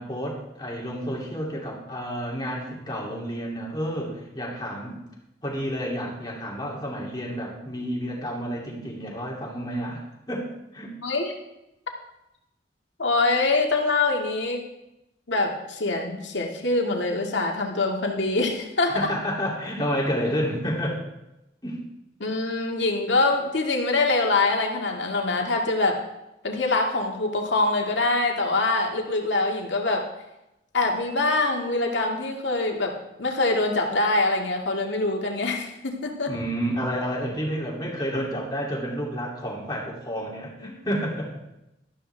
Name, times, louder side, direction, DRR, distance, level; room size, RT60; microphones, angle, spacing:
voice 1, 0.0-5.0 5.4-10.5 10.7-10.9 18.9-21.0 21.6-21.8 36.3-41.3, equal, 20° left, -3 dB, 2.7 m, -30 dB
voice 2, 11.0-11.3 13.0-14.6 15.3-19.1 22.2-26.0 26.4-30.1 30.7-32.9 33.2-36.3 40.6-40.7, left 2 dB, 85° left, 1 dB, 2.0 m, -24 dB
12.5 x 12.5 x 3.4 m, 0.91 s
head